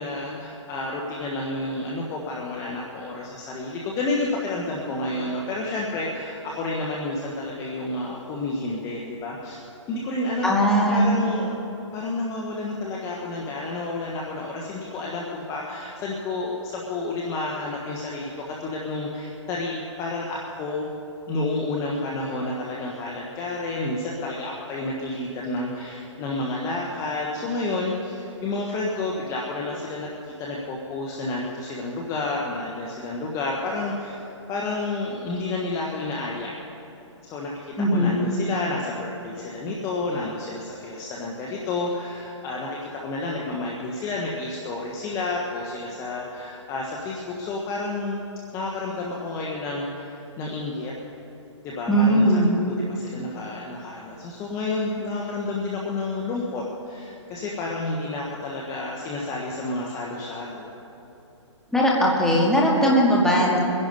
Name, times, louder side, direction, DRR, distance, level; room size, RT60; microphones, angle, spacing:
voice 1, 0.0-9.6 9.9-11.6 11.9-20.9 21.3-36.5 37.2-48.2 48.5-50.9 51.6-52.4 52.9-60.7, left 2 dB, 20° left, -2 dB, 1.3 m, -30 dB
voice 2, 10.4-11.1 37.8-38.2 51.9-52.5 61.7-63.6, equal, 5° left, -4 dB, 2.1 m, -19 dB
22.0 x 11.0 x 5.4 m, 2.9 s
hypercardioid pair, 150°, 16 cm